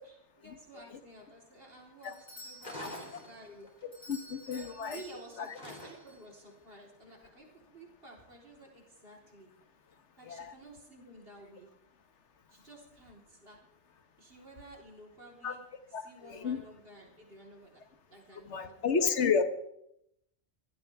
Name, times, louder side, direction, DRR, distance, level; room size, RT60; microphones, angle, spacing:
voice 1, 0.0-3.9 4.5-9.5 10.2-11.7 12.5-13.6 14.2-15.6 15.9-17.8 18.1-19.0, right 1 dB, 55° right, -1 dB, 4.2 m, -53 dB
Doorbell, 2.0-6.5, equal, 65° left, 6.8 m, -53 dB
sound 1, 2.6-3.8 5.5-6.3, left 1 dB, 40° left, 3.0 m, -45 dB
voice 2, 4.1-5.0 5.4-5.5 10.3-10.5 15.4-15.5 15.9-16.6 18.5-19.4, left 5 dB, 85° left, 10 dB, 1.5 m, -31 dB
24.5 x 15.5 x 3.6 m, 0.78 s
omnidirectional pair, 1.2 m